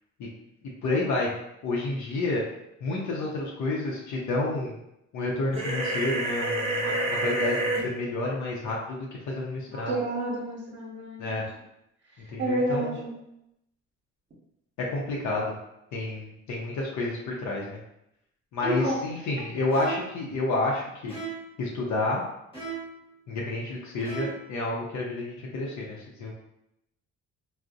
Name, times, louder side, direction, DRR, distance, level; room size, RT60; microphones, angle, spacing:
voice 1, 0.8-1.3 1.6-2.4 2.8-4.7 5.1-9.0 9.3-9.9 11.2-11.4 12.3-13.0 14.8-15.5 15.9-17.8 18.5-21.1 21.6-22.2 23.3-26.3, left 2 dB, 70° left, -3 dB, 0.6 m, -29 dB
sound 1, 5.5-7.8, right 1 dB, 20° right, 0.6 m, -28 dB
voice 2, 9.7-11.5 12.4-13.1 18.6-19.0, right 1 dB, 40° right, -3 dB, 0.9 m, -29 dB
sound 2, 19.7-20.2 21.1-21.6 22.5-23.0 24.0-24.5, right 6 dB, 15° left, 1.0 m, -37 dB
2.6 x 2.0 x 2.4 m, 0.83 s
cardioid pair, 90°, 30 cm